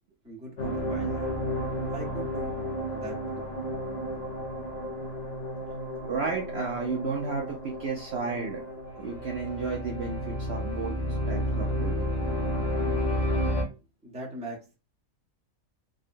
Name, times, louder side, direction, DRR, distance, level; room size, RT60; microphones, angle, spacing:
voice 1, 0.2-1.1 1.9-2.5 2.9-3.4 14.0-14.6, right 1 dB, 5° right, -2 dB, 0.7 m, -40 dB
sound 1, 0.6-13.6, equal, 50° left, 1.0 m, -31 dB
voice 2, 6.1-8.6 9.0-11.0 11.3-12.1, right 4 dB, 60° right, -1 dB, 0.7 m, -33 dB
3.7 x 2.1 x 2.5 m, 0.30 s
omnidirectional pair, 1.5 m